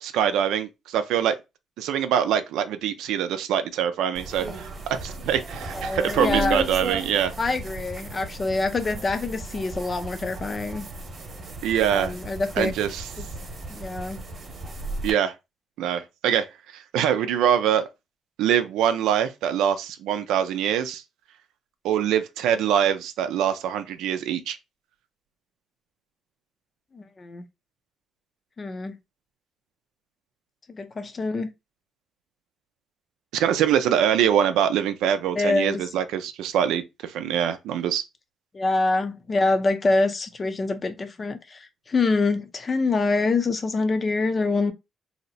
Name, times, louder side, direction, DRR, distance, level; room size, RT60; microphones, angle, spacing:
voice 1, 0.0-1.4 1.8-7.3 11.6-12.1 12.6-13.0 15.0-15.3 15.8-16.5 16.7-17.9 18.4-21.0 21.8-24.6 33.3-38.0, right 9 dB, 90° right, 0.4 m, -24 dB
sound 1, 4.1-15.1, right 2 dB, 45° right, 0.9 m, -34 dB
voice 2, 5.7-6.6 7.4-10.9 11.8-12.7 13.2-13.3 13.7-14.2 26.9-27.4 28.6-29.0 30.7-31.5 35.4-35.9 38.5-44.7, left 3 dB, 35° left, 0.6 m, -25 dB
2.8 x 2.1 x 3.9 m
cardioid pair, 90°, 0 cm